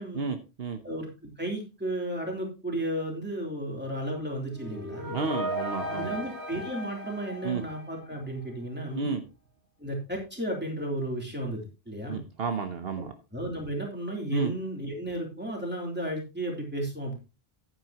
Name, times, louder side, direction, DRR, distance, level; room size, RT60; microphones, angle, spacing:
voice 1, 0.1-0.8 5.1-6.2 7.4-7.6 8.9-9.2 12.1-13.1 14.3-14.5, right 4 dB, 70° right, 7 dB, 1.2 m, -31 dB
voice 2, 0.8-5.2 5.9-9.1 9.8-12.2 13.0-13.1 13.3-17.2, right 1 dB, 10° right, 0 dB, 3.2 m, -33 dB
sound 1, 4.5-8.5, equal, 90° right, 2.5 m, -36 dB
11.0 x 9.8 x 2.9 m, 0.30 s
omnidirectional pair, 1.1 m